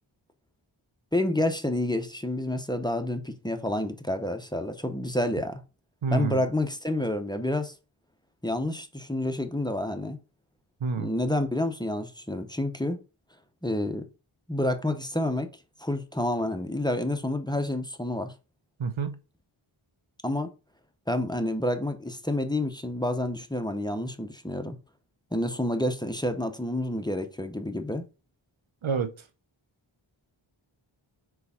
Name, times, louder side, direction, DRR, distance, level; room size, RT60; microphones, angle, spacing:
voice 1, 1.1-5.6 6.1-7.7 8.4-10.2 11.0-13.0 13.6-14.1 14.5-15.5 15.8-18.3 20.2-20.5 21.1-24.8 25.3-28.0, left 1 dB, 10° left, 0.9 m, -29 dB
voice 2, 6.0-6.4 10.8-11.1 18.8-19.2 28.8-29.1, right 5 dB, 70° right, 0.8 m, -28 dB
4.7 x 4.7 x 5.5 m
wide cardioid pair, 50°, 49 cm